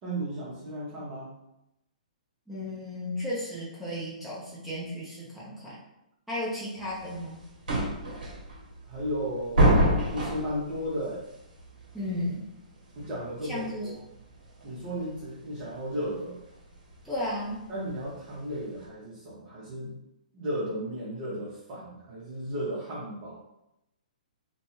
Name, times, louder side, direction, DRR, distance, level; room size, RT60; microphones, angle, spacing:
voice 1, 0.0-1.3 8.9-9.8 10.1-11.2 13.0-14.0 14.6-16.4 17.7-20.0 20.3-23.4, equal, 30° right, -8 dB, 0.9 m, -34 dB
voice 2, 2.5-5.8 6.3-7.4 11.9-12.4 13.5-13.9 17.0-17.6, left 1 dB, ahead, -9 dB, 0.8 m, -34 dB
sound 1, 6.8-18.9, right 1 dB, 70° right, 0.9 m, -29 dB
2.5 x 2.2 x 3.1 m, 0.88 s
hypercardioid pair, 130°, 4 cm